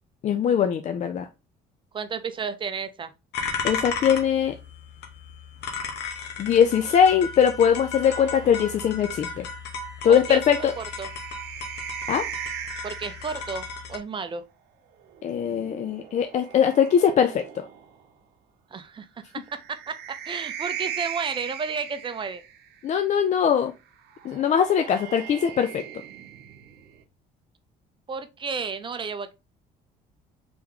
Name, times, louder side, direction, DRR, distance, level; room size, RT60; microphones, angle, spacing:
voice 1, 0.2-1.3 3.6-4.5 6.4-9.4 10.0-10.7 12.1-12.2 15.2-17.6 22.8-23.7 24.2-25.8, left 8 dB, 45° left, 0.4 m, -21 dB
voice 2, 1.9-3.1 10.1-11.1 12.8-14.4 18.7-19.1 19.3-22.4 28.1-29.3, right 5 dB, 30° right, 0.5 m, -32 dB
sound 1, 3.3-14.0, left 5 dB, 80° left, 0.9 m, -35 dB
sound 2, 8.1-13.6 15.0-18.0 19.4-22.8 24.1-27.0, right 9 dB, 75° right, 0.8 m, -39 dB
3.4 x 3.0 x 3.6 m
cardioid pair, 110°, 17 cm